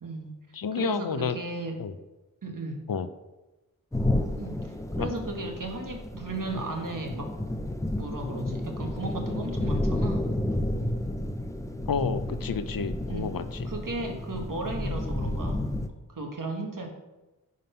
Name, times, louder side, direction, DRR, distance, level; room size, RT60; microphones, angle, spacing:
voice 1, 0.0-0.3 0.8-1.8 2.4-2.9 4.4-7.3 7.9-10.3 13.1-13.3 13.6-15.7 16.1-16.9, right 2 dB, 65° right, 2 dB, 1.5 m, -35 dB
voice 2, 0.5-1.4 1.8-1.9 2.9-3.1 5.0-5.1 11.9-13.7, left 6 dB, 80° left, 11 dB, 0.6 m, -30 dB
sound 1, 3.9-15.9, left 1 dB, 10° left, 0.6 m, -31 dB
9.3 x 3.9 x 5.5 m, 1.1 s
wide cardioid pair, 60°, 34 cm